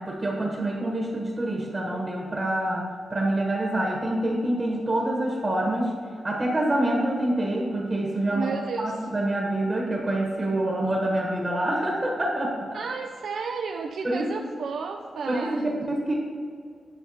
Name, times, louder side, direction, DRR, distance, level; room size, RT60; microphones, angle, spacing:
voice 1, 0.0-5.9 6.2-12.8 14.0-14.3 15.3-15.6 16.1-16.2, right 1 dB, 30° right, -1 dB, 1.2 m, -26 dB
voice 2, 8.3-9.1 12.7-15.9, right 5 dB, 75° right, 3 dB, 0.4 m, -33 dB
10.0 x 6.8 x 2.8 m, 2.2 s
cardioid pair, 100°, 0 cm